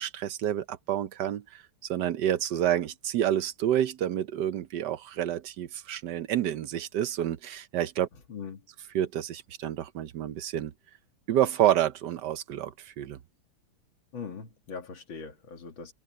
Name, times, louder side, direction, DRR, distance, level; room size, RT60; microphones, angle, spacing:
voice 1, 0.0-8.1 8.9-10.7 11.3-13.2, right 11 dB, 65° right, 1.2 m, -29 dB
voice 2, 8.3-8.6 14.1-15.9, left 5 dB, 70° left, 2.9 m, -40 dB
omnidirectional pair, 2.3 m